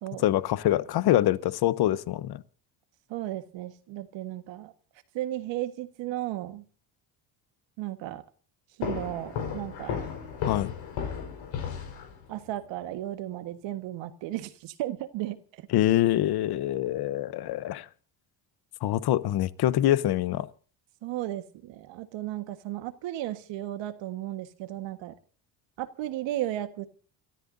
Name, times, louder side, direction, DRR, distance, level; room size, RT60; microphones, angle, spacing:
voice 1, 0.2-2.4 10.4-10.7 15.7-17.9 18.8-20.5, left 13 dB, 60° left, 1.0 m, -25 dB
voice 2, 3.1-4.7 5.1-6.6 7.8-8.2 8.8-10.0 12.3-15.7 21.0-25.1 25.8-26.9, right 14 dB, 75° right, 1.6 m, -35 dB
sound 1, 8.8-12.5, left 7 dB, 75° left, 4.8 m, -34 dB
29.5 x 13.5 x 2.7 m
supercardioid pair, 85°, 45 cm